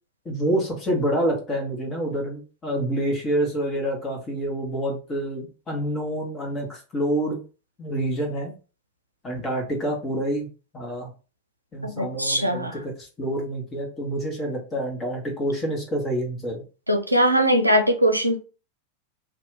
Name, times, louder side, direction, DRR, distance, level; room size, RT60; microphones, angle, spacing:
voice 1, 0.2-7.4 7.8-8.5 9.2-10.5 10.7-11.1 11.7-16.6, right 1 dB, 20° left, 1.3 m, -27 dB
voice 2, 11.8-12.7 16.9-18.4, equal, 90° right, 0.5 m, -21 dB
2.7 x 2.4 x 3.5 m
figure-of-eight pair, 90°, 0 cm